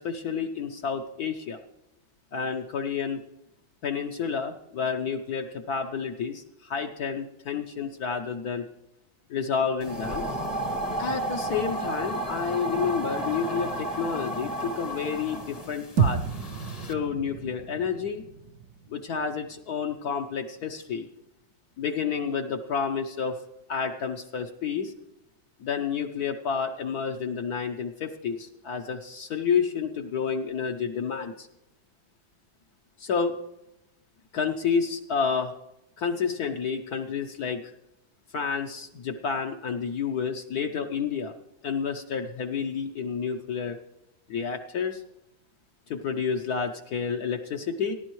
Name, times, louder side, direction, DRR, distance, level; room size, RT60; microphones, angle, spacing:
voice 1, 0.0-1.6 2.3-3.2 3.8-8.6 9.3-10.2 11.0-16.2 16.9-18.2 18.9-21.1 21.8-23.4 23.7-24.9 25.6-31.5 33.0-33.4 34.3-35.5 36.0-37.7 38.3-41.3 41.6-43.8 44.3-45.0 45.9-47.9, left 6 dB, 60° left, 3 dB, 1.2 m, -30 dB
sound 1, 9.8-16.9, right 1 dB, 25° left, 0.9 m, -32 dB
sound 2, 16.0-20.3, right 6 dB, 65° right, 1.2 m, -31 dB
20.0 x 11.0 x 3.1 m, 0.86 s
omnidirectional pair, 2.0 m